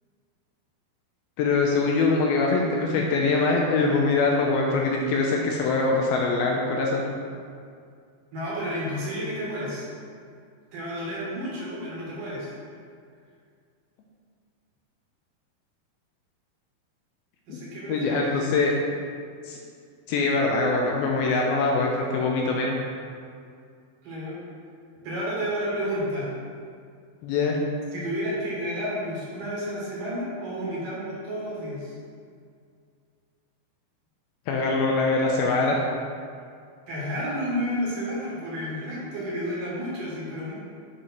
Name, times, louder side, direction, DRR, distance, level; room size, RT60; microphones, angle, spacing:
voice 1, 1.4-7.0 17.5-17.6 17.9-18.7 19.5-19.6 20.1-22.7 27.2-27.6 34.5-35.8, left 3 dB, 80° left, -1 dB, 2.3 m, -23 dB
voice 2, 8.3-9.9 10.7-12.5 17.5-18.4 24.0-24.4 25.0-26.3 27.9-31.9 36.9-40.5, equal, 60° right, -6 dB, 3.0 m, -31 dB
8.2 x 5.6 x 4.3 m, 2.2 s
omnidirectional pair, 4.7 m